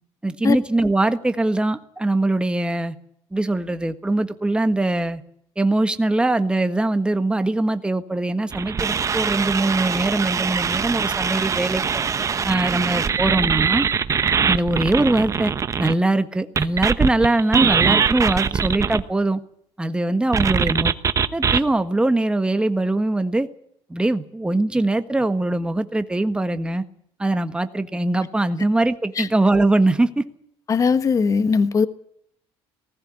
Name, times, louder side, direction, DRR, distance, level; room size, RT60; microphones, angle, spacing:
voice 1, 0.2-2.9 3.3-5.2 5.6-12.0 12.4-13.9 14.5-15.5 15.8-19.4 19.8-20.9 21.3-23.5 23.9-26.8 27.2-30.2, right 2 dB, 10° right, 1.5 m, -22 dB
sound 1, 8.5-15.9 16.6-19.0 20.3-21.6, right 6 dB, 30° right, 1.0 m, -22 dB
voice 2, 30.7-31.9, left 5 dB, 30° left, 1.3 m, -19 dB
19.5 x 16.5 x 9.7 m
cardioid pair, 120°, 10 cm